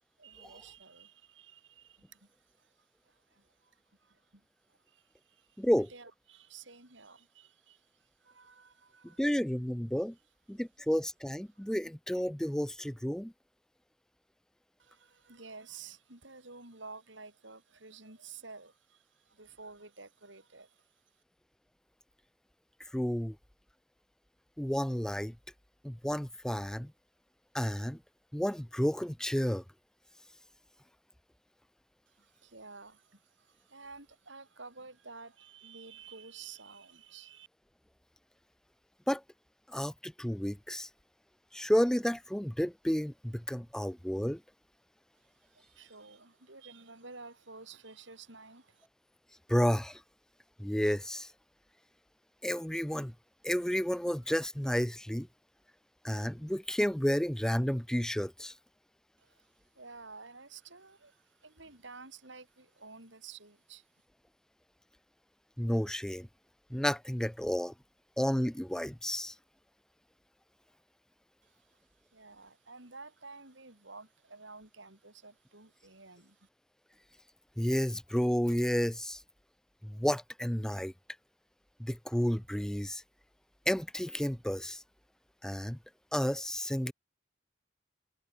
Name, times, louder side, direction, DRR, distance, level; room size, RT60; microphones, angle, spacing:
voice 1, 0.2-9.2 11.5-11.8 14.8-21.2 32.1-37.5 45.1-48.9 59.2-63.9 71.4-76.5, right 4 dB, 70° right, 7.4 m, -52 dB
voice 2, 9.2-10.2 10.5-13.3 22.9-23.4 24.6-25.4 25.8-26.9 27.5-28.0 28.3-29.6 39.1-39.2 39.7-40.9 41.5-44.4 49.5-50.0 50.6-51.3 52.4-53.1 53.4-55.3 56.0-58.5 65.6-66.3 66.7-67.7 68.2-69.3 77.6-79.2 79.8-80.9 81.8-83.0 83.7-84.8 85.4-85.8 86.1-86.9, equal, 5° left, 0.4 m, -31 dB
head